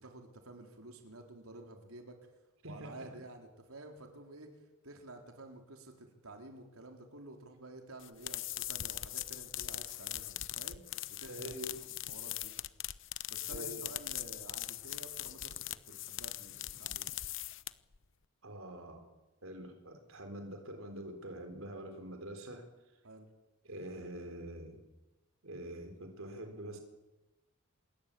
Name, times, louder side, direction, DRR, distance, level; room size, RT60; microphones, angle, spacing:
voice 1, 0.0-2.2 2.6-10.9 11.2-11.4 12.1-12.5 13.3-17.1 23.0-23.3, right 2 dB, 90° right, 3 dB, 4.4 m, -51 dB
voice 2, 2.6-3.2 11.3-11.9 13.5-13.9 18.4-19.1 19.4-23.0 23.6-24.8 25.4-26.8, right 1 dB, 75° right, 5 dB, 4.2 m, -45 dB
sound 1, 8.0-18.0, left 14 dB, 60° left, 0.9 m, -41 dB
28.0 x 22.0 x 8.7 m, 1.1 s
head